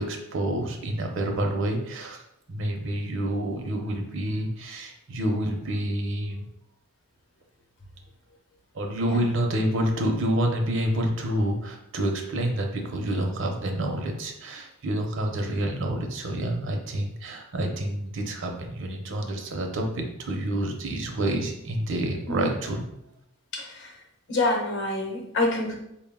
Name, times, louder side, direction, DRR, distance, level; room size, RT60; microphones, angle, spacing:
voice 1, 0.0-2.2 2.5-6.4 8.7-22.8, right 1 dB, 60° right, 3 dB, 0.6 m, -28 dB
voice 2, 9.0-9.4 22.3-22.5 23.5-23.9 24.3-25.7, left 2 dB, 55° left, 1 dB, 0.8 m, -27 dB
4.3 x 2.2 x 3.5 m, 0.81 s
head